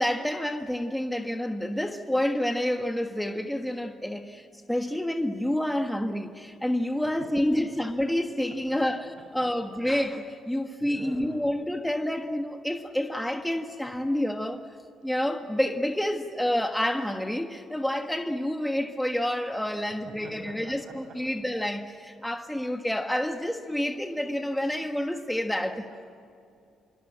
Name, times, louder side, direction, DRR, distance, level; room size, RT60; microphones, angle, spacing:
voice 1, 0.0-14.6 15.0-25.9, left 1 dB, 5° left, 1.4 m, -28 dB
voice 2, 10.8-11.4 20.2-20.9, right 2 dB, 60° right, 7.9 m, -45 dB
26.5 x 23.5 x 8.6 m
cardioid pair, 90°, 0 cm